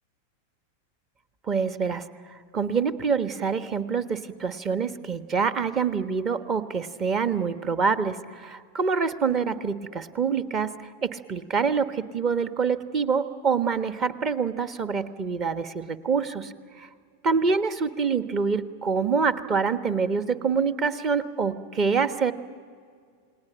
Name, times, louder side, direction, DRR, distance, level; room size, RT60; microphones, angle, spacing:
voice 1, 1.5-2.0 2.5-10.7 11.0-16.9 17.2-22.3, right 5 dB, 30° right, 12 dB, 1.2 m, -26 dB
29.5 x 20.0 x 8.9 m, 2.1 s
figure-of-eight pair, 90°, 0 cm